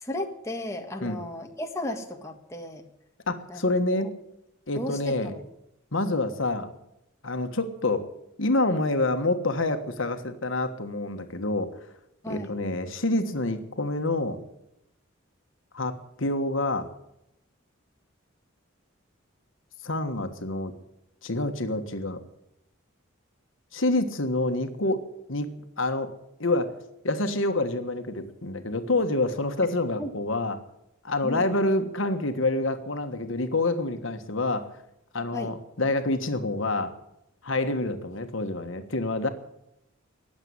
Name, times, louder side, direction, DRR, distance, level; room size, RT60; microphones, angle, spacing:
voice 1, 0.0-2.8 3.5-3.6 4.0-4.1 4.7-5.4 12.2-12.6 30.0-30.1 31.2-31.5 35.3-35.5, left 1 dB, 15° left, 2 dB, 1.6 m, -34 dB
voice 2, 3.3-4.1 4.7-5.3 5.9-6.7 7.2-8.0 8.4-11.7 12.3-14.4 15.7-16.9 19.8-20.7 21.2-22.2 23.7-25.0 25.3-25.5 25.8-26.1 26.4-26.7 27.0-30.6 31.0-34.7 35.1-36.9 37.4-39.3, left 2 dB, 70° left, 7 dB, 1.4 m, -27 dB
19.0 x 7.5 x 9.8 m, 0.82 s
head